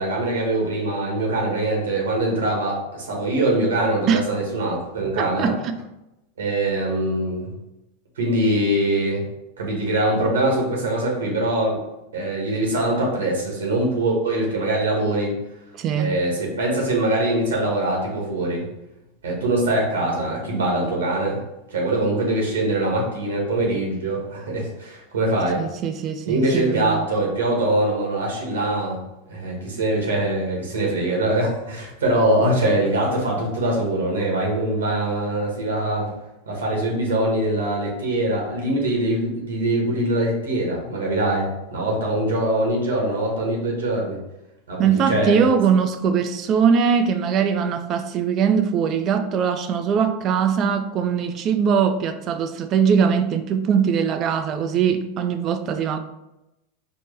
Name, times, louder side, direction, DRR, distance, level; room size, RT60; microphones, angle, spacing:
voice 1, 0.0-5.5 6.4-7.5 8.2-9.3 9.6-11.8 12.1-15.4 15.9-18.7 19.2-21.4 21.7-25.6 26.2-29.0 29.3-36.1 36.5-44.2 44.7-45.4, right 1 dB, 90° right, -1 dB, 1.3 m, -23 dB
voice 2, 5.2-5.7 15.8-16.2 25.6-27.1 44.8-56.0, right 7 dB, 40° right, 7 dB, 0.4 m, -21 dB
4.5 x 2.1 x 3.3 m, 0.92 s
hypercardioid pair, 105°, 0 cm